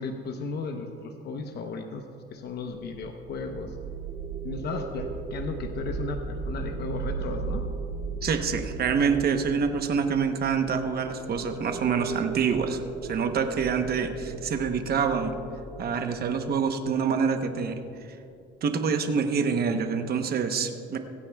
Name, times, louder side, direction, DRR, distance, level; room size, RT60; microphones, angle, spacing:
voice 1, 0.0-2.0 2.3-3.8 4.4-7.6, left 4 dB, 50° left, 4 dB, 0.9 m, -35 dB
sound 1, 2.6-17.7, right 4 dB, 90° right, 3.1 m, -36 dB
voice 2, 8.2-15.3 15.8-17.8 18.6-21.0, right 6 dB, 50° right, 7 dB, 0.9 m, -26 dB
23.0 x 9.4 x 2.3 m, 2.6 s
cardioid pair, 115°, 21 cm